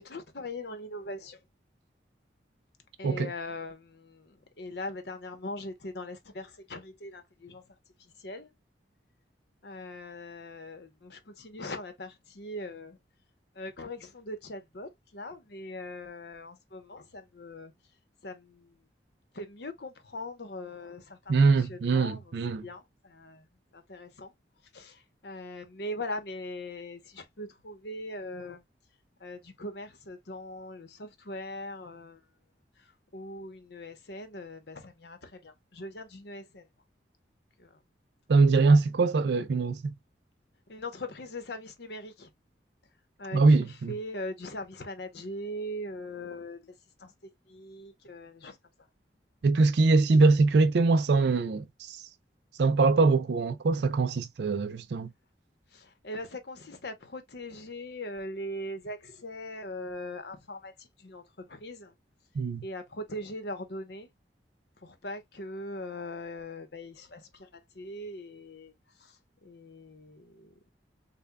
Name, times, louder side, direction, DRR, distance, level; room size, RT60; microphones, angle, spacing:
voice 1, 0.0-1.4 3.0-7.7 8.0-8.5 9.6-13.0 13.5-17.7 18.2-18.8 19.3-23.5 23.7-24.3 24.7-28.6 29.2-32.2 32.8-36.7 37.6-37.8 40.7-42.3 43.2-46.7 47.0-48.6 55.7-61.9 62.6-64.1 64.8-68.7 69.0-70.5, left 1 dB, 65° left, 0.9 m, -41 dB
voice 2, 21.3-22.6 38.3-39.9 43.3-43.9 49.4-52.0 52.6-55.1 62.4-62.6, right 3 dB, 65° right, 0.4 m, -23 dB
6.7 x 2.2 x 2.2 m
head